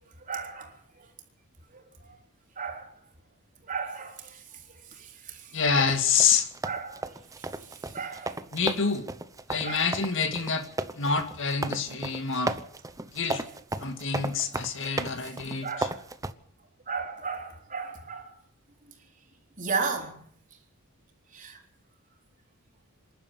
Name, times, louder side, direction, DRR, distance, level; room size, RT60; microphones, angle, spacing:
voice 1, 0.3-0.7 1.7-2.1 2.6-2.9 3.7-4.4 5.0-5.5 6.6-7.1 7.9-8.4 9.6-9.8 11.9-12.0 15.6-16.0 16.9-18.3 19.6-20.2 21.3-21.6, right 5 dB, 35° right, 3.9 m, -34 dB
voice 2, 5.5-6.5 8.5-9.1 9.5-10.7 10.9-12.6 13.1-13.4 13.8-15.9, left 5 dB, 55° left, 2.2 m, -27 dB
sound 1, 5.8-16.3, right 2 dB, 15° right, 0.9 m, -35 dB
27.0 x 11.5 x 8.4 m
head